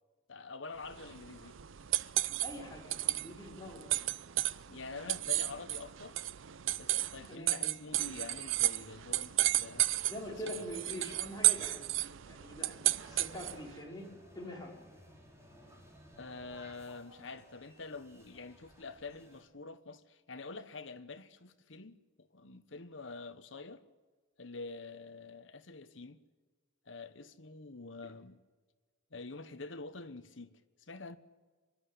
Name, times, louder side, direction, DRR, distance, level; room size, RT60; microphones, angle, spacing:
voice 1, 0.3-1.6 4.7-6.2 6.8-10.0 10.3-10.7 16.2-23.8 24.4-26.2 26.9-28.4 29.1-30.6 30.9-31.2, left 3 dB, 65° left, 1.2 m, -46 dB
sound 1, 0.8-13.7, right 15 dB, 70° right, 0.6 m, -33 dB
voice 2, 2.4-4.0 7.3-7.6 10.0-11.9 12.2-14.1 14.3-14.7, left 1 dB, 20° left, 4.7 m, -44 dB
sound 2, 12.9-19.4, equal, 15° right, 4.2 m, -58 dB
25.0 x 11.5 x 9.8 m
head